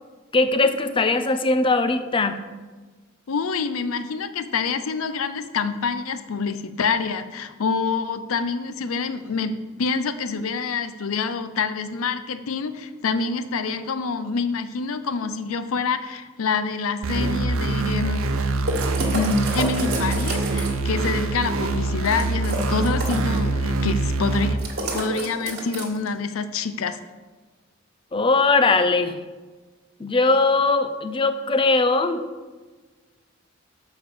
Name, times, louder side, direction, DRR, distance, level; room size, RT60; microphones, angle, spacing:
voice 1, 0.3-2.4 28.1-29.2 30.0-32.2, left 3 dB, 25° left, 10 dB, 0.5 m, -20 dB
voice 2, 3.3-9.5 9.8-18.2 19.1-24.7 24.9-27.0, left 5 dB, 85° left, 11 dB, 0.5 m, -26 dB
sound 1, 17.0-24.5, right 2 dB, 80° right, 0.7 m, -24 dB
sound 2, 18.7-20.9 22.0-23.4 24.6-26.1, right 2 dB, 50° right, 1.8 m, -29 dB
7.1 x 5.1 x 6.7 m, 1.3 s
head